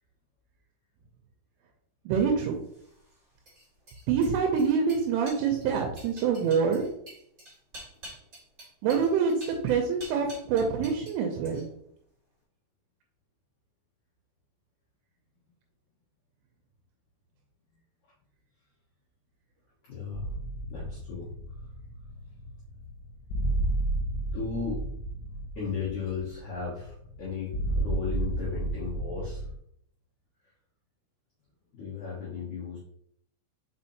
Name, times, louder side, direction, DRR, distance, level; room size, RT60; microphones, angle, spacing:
voice 1, 2.1-2.6 4.1-6.8 8.8-11.7, right 6 dB, 85° right, 2 dB, 3.0 m, -26 dB
sound 1, 2.6-11.2 11.4-11.9, right 1 dB, 40° right, 1.3 m, -48 dB
voice 2, 19.8-20.4 20.7-21.6 24.3-24.8 25.5-29.5 31.7-32.8, left 5 dB, 75° left, -9 dB, 1.7 m, -35 dB
sound 2, 20.1-29.6, right 1 dB, 90° left, 3.3 m, -32 dB
6.2 x 5.4 x 2.9 m, 0.72 s
omnidirectional pair, 6.0 m